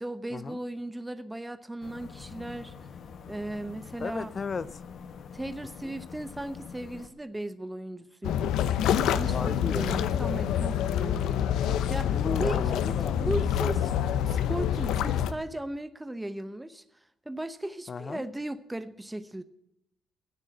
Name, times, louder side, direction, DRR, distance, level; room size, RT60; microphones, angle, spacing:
voice 1, 0.0-2.7 3.3-4.3 5.3-8.6 9.0-12.6 12.9-13.9 14.3-16.8 17.3-19.4, right 1 dB, 10° right, 11 dB, 0.8 m, -36 dB
sound 1, 1.8-7.1, left 6 dB, 65° left, 1.4 m, -45 dB
voice 2, 4.0-4.8 5.8-5.9 9.3-10.1 12.1-13.2 17.9-18.2, left 5 dB, 40° left, 16 dB, 0.6 m, -35 dB
sound 2, 8.2-15.3, left 9 dB, 85° left, 0.8 m, -27 dB
13.5 x 9.9 x 7.7 m, 0.82 s
cardioid pair, 90°, 0 cm